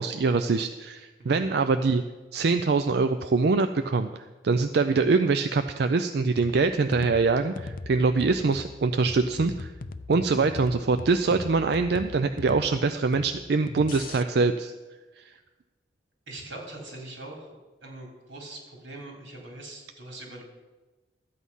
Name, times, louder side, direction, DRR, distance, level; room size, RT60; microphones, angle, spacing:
voice 1, 0.0-2.0 2.3-9.7 10.1-14.7 15.2-15.3, right 4 dB, 60° right, 9 dB, 0.4 m, -24 dB
sound 1, 6.4-14.2, left 3 dB, 50° left, 0.5 m, -40 dB
voice 2, 16.3-17.5 17.8-20.4, right 2 dB, 90° right, 0 dB, 3.3 m, -42 dB
12.5 x 8.3 x 5.5 m, 1.2 s
head